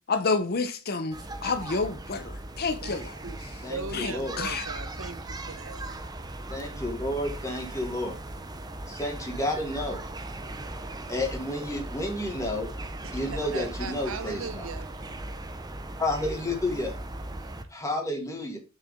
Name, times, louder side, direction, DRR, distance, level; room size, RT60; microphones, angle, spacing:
voice 1, 0.1-1.2 1.4-3.2 3.9-4.6, left 4 dB, 50° left, 0.7 m, -29 dB
sound 1, 1.1-17.6, right 1 dB, 20° right, 0.7 m, -38 dB
voice 2, 2.8-3.4 3.7-5.9 13.0-15.1, right 4 dB, 75° right, 0.9 m, -39 dB
voice 3, 3.6-4.3 6.5-8.2 8.9-10.0 11.1-12.7 13.1-14.7 16.0-16.9 17.7-18.6, left 1 dB, 15° left, 2.2 m, -31 dB
6.6 x 6.4 x 3.6 m
head